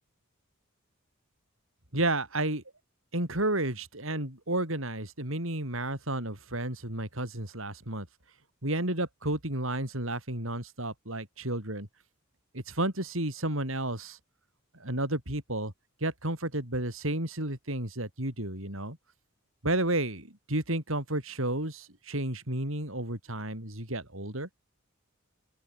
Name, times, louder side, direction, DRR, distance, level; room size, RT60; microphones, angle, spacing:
voice 1, 1.9-2.6 3.1-8.1 8.6-11.9 12.5-14.2 14.8-15.7 16.0-19.0 19.6-24.5, right 1 dB, 70° right, 7.2 m, -32 dB
open air
head